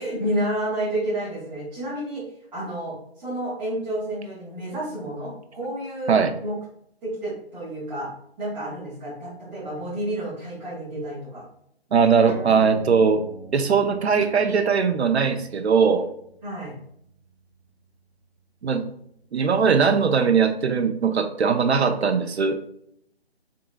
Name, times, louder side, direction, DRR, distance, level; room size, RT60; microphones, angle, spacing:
voice 1, 0.0-2.2 2.5-6.5 7.0-8.1 8.4-11.4 16.4-16.7, right 1 dB, 5° right, -11 dB, 0.7 m, -30 dB
voice 2, 11.9-13.2 13.5-16.1 18.6-18.8 19.3-22.7, right 6 dB, 80° right, 8 dB, 0.5 m, -20 dB
sound 1, 12.3-19.2, right 2 dB, 80° left, 1.5 m, -45 dB
3.8 x 3.6 x 2.3 m, 0.70 s
figure-of-eight pair, 150°, 32 cm